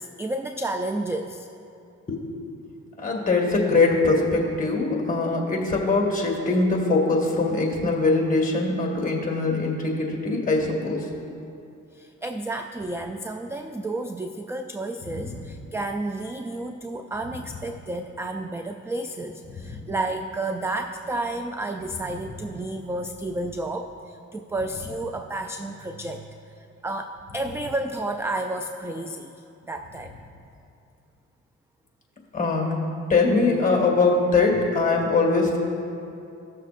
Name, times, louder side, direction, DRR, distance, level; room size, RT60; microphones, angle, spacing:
voice 1, 0.0-1.5 11.9-30.1, right 2 dB, 10° right, 5 dB, 0.3 m, -31 dB
voice 2, 3.0-11.1 15.1-15.4 19.5-19.8 32.3-32.7 33.1-35.6, left 3 dB, 25° left, 0 dB, 1.9 m, -22 dB
16.0 x 6.5 x 2.5 m, 2.7 s
cardioid pair, 90°, 30 cm